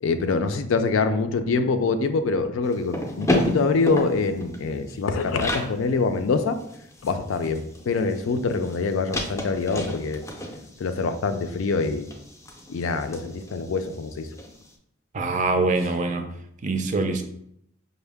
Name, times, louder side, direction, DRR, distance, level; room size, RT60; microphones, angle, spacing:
voice 1, 0.0-6.6 7.0-10.2 10.8-12.1 12.7-14.3, left 4 dB, 75° left, 8 dB, 0.4 m, -25 dB
sound 1, 2.7-5.7 6.1-6.2 6.5-14.5, left 1 dB, 15° left, 0.5 m, -32 dB
voice 2, 15.1-16.3 16.6-17.2, right 3 dB, 40° right, 6 dB, 0.4 m, -24 dB
5.3 x 2.1 x 3.4 m, 0.73 s
head